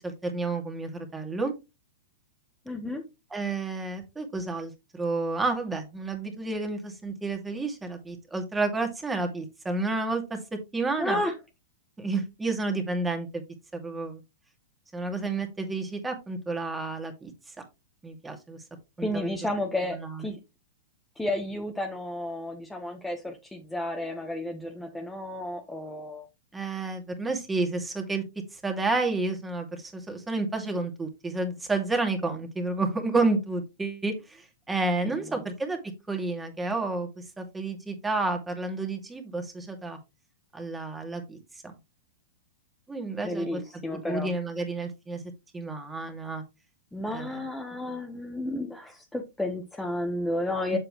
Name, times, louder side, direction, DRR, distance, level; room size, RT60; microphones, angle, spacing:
voice 1, 0.0-1.5 3.3-10.4 10.7-11.2 12.0-13.4 13.7-14.2 14.9-17.3 18.0-18.6 19.0-19.3 19.9-20.2 26.5-28.2 28.5-35.8 36.1-40.0 40.5-41.4 41.6-41.7 42.9-43.6 44.0-45.2 45.5-46.4 47.1-47.4 50.7-50.8, right 3 dB, 10° right, 4 dB, 2.3 m, -30 dB
voice 2, 2.6-3.0 11.0-11.3 19.0-20.4 21.2-26.3 35.0-35.4 43.2-44.3 46.9-50.8, left 1 dB, 5° left, 2 dB, 1.3 m, -32 dB
7.7 x 6.9 x 3.2 m, 0.25 s
hypercardioid pair, 110°, 0 cm